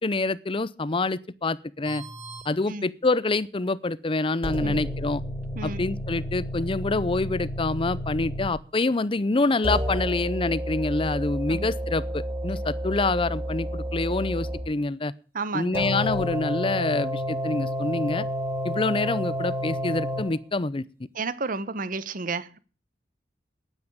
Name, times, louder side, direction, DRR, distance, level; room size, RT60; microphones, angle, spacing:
voice 1, 0.0-2.0 2.5-5.2 5.6-15.1 15.5-18.2 18.6-20.8, left 3 dB, 30° left, 0.6 m, -26 dB
sound 1, 1.9-2.5 4.4-8.5 9.6-14.7 15.7-20.3, equal, 15° right, 2.8 m, -31 dB
voice 2, 15.3-16.0 21.1-22.6, right 3 dB, 50° right, 0.9 m, -32 dB
10.0 x 9.7 x 8.6 m
head